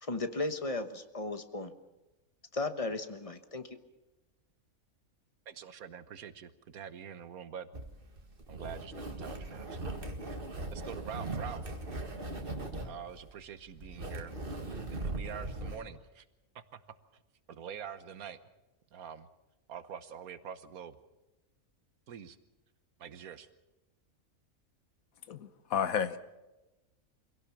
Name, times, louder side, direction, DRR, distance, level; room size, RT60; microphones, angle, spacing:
voice 1, 0.0-1.7 2.5-3.7, left 2 dB, 25° left, 9 dB, 1.1 m, -35 dB
voice 2, 5.5-7.7 8.5-9.8 10.7-11.7 12.8-16.2 16.5-16.8 17.5-18.4 18.9-19.3 19.7-21.0 22.1-22.4 23.0-23.5, right 8 dB, 90° right, 12 dB, 1.5 m, -45 dB
sound 1, 7.7-15.8, right 2 dB, 40° right, 2.0 m, -39 dB
voice 3, 25.3-26.2, left 7 dB, 75° left, 12 dB, 1.4 m, -32 dB
25.0 x 17.0 x 7.2 m, 1.0 s
omnidirectional pair, 1.5 m